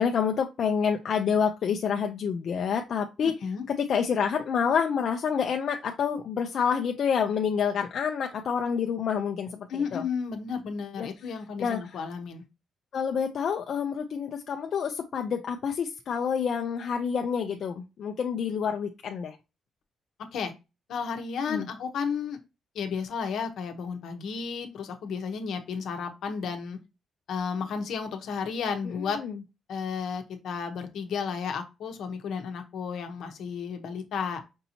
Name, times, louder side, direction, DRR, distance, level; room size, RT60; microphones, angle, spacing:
voice 1, 0.0-3.3 3.7-10.0 11.0-11.1 11.6-12.0 12.9-19.4 21.5-21.7 28.9-29.4, left 7 dB, 50° left, 3 dB, 0.4 m, -28 dB
voice 2, 3.2-3.6 9.7-12.4 20.3-20.5 20.9-22.4 22.7-26.8 27.3-29.2 29.7-34.4, left 6 dB, 70° left, 6 dB, 0.8 m, -33 dB
5.3 x 2.7 x 2.7 m, 0.26 s
cardioid pair, 155°, 0 cm